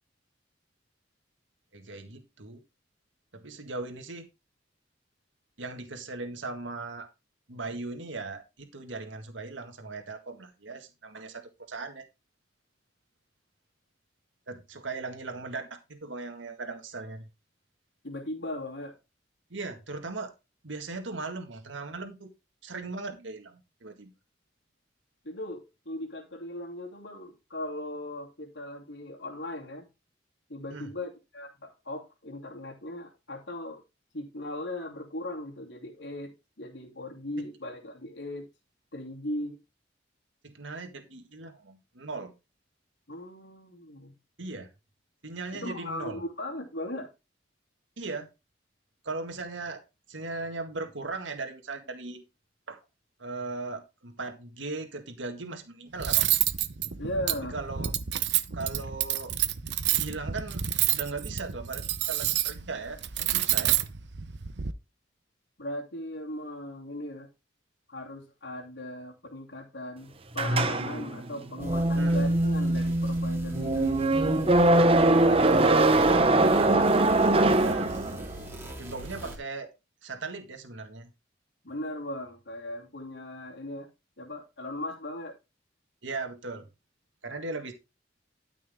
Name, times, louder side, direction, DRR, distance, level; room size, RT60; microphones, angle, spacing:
voice 1, 1.7-2.6 3.3-4.2 5.6-7.1 7.5-12.0 14.5-17.3 19.5-20.3 20.6-22.3 22.6-24.1 30.7-30.9 40.4-42.3 44.4-44.7 45.2-46.2 48.0-48.3 49.0-49.8 50.1-52.2 52.7-52.8 53.2-56.3 57.5-57.9 58.5-59.3 60.0-63.8 72.0-72.3 75.3-77.9 78.8-79.7 80.0-81.1 86.0-86.7 87.2-87.7, right 3 dB, 90° right, 1.9 m, -38 dB
voice 2, 18.0-19.0 25.2-29.9 30.5-33.8 34.1-38.5 38.9-39.6 43.1-44.1 45.5-47.1 57.0-57.6 65.6-67.3 67.9-74.6 81.6-83.9 84.2-85.4, left 1 dB, 70° left, 2.8 m, -38 dB
Cutlery silverware, 56.0-64.7, right 12 dB, 65° right, 0.8 m, -28 dB
sound 1, 70.3-78.4, right 2 dB, 30° right, 0.9 m, -22 dB
sound 2, 71.6-79.4, right 1 dB, 15° right, 3.3 m, -42 dB
13.0 x 6.2 x 3.6 m
head